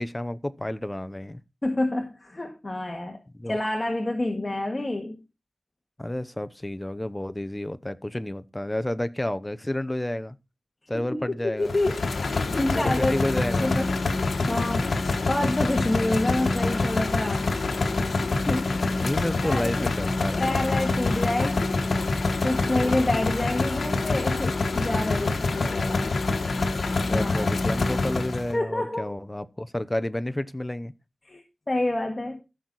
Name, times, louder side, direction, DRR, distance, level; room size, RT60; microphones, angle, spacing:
voice 1, 0.0-1.4 3.3-3.6 6.0-10.4 10.9-11.7 12.7-13.8 17.6-18.4 19.0-20.7 22.7-23.1 25.0-25.6 26.7-30.9, left 1 dB, 15° left, 0.8 m, -31 dB
voice 2, 1.6-3.2 3.5-5.2 11.1-13.2 13.6-13.9 14.2-17.5 18.5-18.8 19.4-19.9 20.4-26.1 27.1-27.5 28.5-29.1 31.2-32.4, left 1 dB, 30° left, 1.8 m, -28 dB
sound 1, 11.7-28.5, left 3 dB, 85° left, 1.2 m, -26 dB
14.5 x 6.3 x 4.0 m
wide cardioid pair, 80°, 0 cm